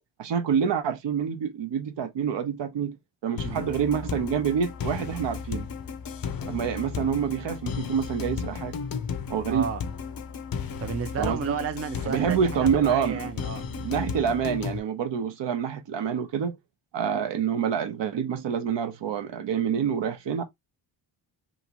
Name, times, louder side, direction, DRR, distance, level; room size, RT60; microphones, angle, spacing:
voice 1, 0.2-3.0 3.2-5.7 6.5-8.7 9.3-9.7 11.2-11.6 12.1-13.3 13.8-16.6 16.9-20.4, right 7 dB, 60° right, 0.8 m, -27 dB
sound 1, 3.4-14.8, left 6 dB, 45° left, 0.7 m, -34 dB
voice 2, 9.5-9.8 10.8-13.6, right 6 dB, 30° right, 0.5 m, -32 dB
2.9 x 2.5 x 2.9 m
supercardioid pair, 60°, 50 cm